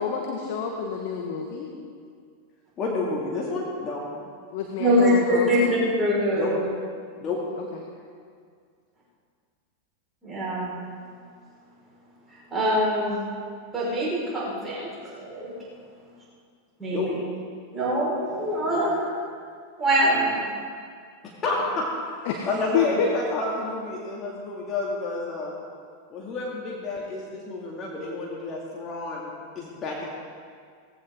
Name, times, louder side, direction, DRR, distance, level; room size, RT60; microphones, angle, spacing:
voice 1, 0.0-1.7 4.5-5.7 7.6-7.8 22.2-23.1, left 7 dB, 50° left, 1 dB, 1.6 m, -29 dB
voice 2, 2.8-4.0 6.3-6.5 7.2-7.4 16.9-17.1 18.7-19.0 21.4-21.9 22.5-25.5 26.1-30.1, left 2 dB, 25° left, -4 dB, 2.5 m, -30 dB
voice 3, 4.8-6.6 10.2-10.8 12.5-13.2 13.7-14.9 15.2-15.5 16.8-17.0 17.7-18.9 19.8-20.4, equal, 10° right, -7 dB, 5.1 m, -23 dB
18.5 x 15.5 x 3.8 m, 2.1 s
figure-of-eight pair, 90°, 0 cm